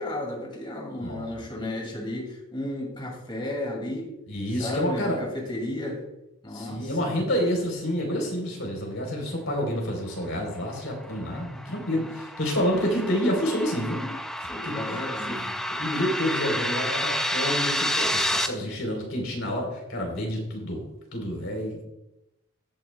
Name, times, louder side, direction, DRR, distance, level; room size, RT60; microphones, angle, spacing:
voice 1, 0.0-4.1 4.6-6.0 6.4-7.1 11.4-12.2 14.5-15.5, left 1 dB, 20° left, 0 dB, 2.2 m, -34 dB
voice 2, 1.0-1.4 4.3-5.2 6.5-14.1 14.9-15.4 15.7-20.8 21.1-21.8, equal, 65° left, 0 dB, 3.5 m, -28 dB
sound 1, 10.7-18.5, equal, ahead, 0.4 m, -30 dB
16.0 x 9.2 x 2.2 m, 0.91 s
head